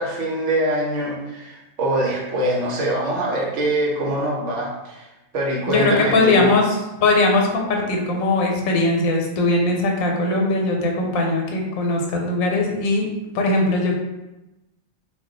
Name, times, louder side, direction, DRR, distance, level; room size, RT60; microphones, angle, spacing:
voice 1, 0.0-5.1 5.3-6.5, right 1 dB, 65° right, -2 dB, 0.9 m, -23 dB
voice 2, 5.7-13.1 13.3-14.0, left 2 dB, 90° left, 1 dB, 1.0 m, -20 dB
2.3 x 2.2 x 3.8 m, 0.99 s
omnidirectional pair, 1.4 m